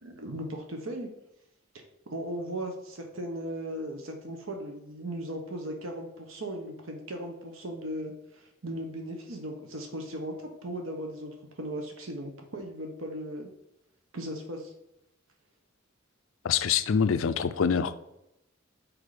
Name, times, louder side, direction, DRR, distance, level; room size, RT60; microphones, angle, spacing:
voice 1, 0.0-1.1 1.7-13.5 14.1-14.7, right 1 dB, 80° right, 3 dB, 1.0 m, -37 dB
voice 2, 16.4-18.0, left 6 dB, 80° left, 13 dB, 0.5 m, -25 dB
6.3 x 4.5 x 5.0 m, 0.85 s
head